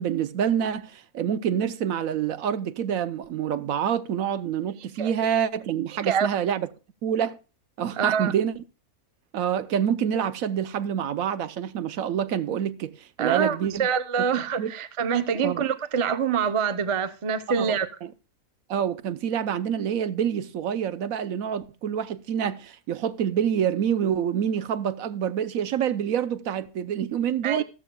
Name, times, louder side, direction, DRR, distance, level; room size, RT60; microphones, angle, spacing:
voice 1, 0.0-6.7 7.0-7.4 7.8-8.5 9.3-13.9 14.6-14.7 15.4-15.6 17.6-18.1 18.7-27.6, right 8 dB, 75° right, 1.1 m, -27 dB
voice 2, 8.0-8.3 13.2-17.9 27.4-27.6, right 7 dB, 40° right, 0.4 m, -25 dB
14.5 x 13.5 x 2.3 m
omnidirectional pair, 1.5 m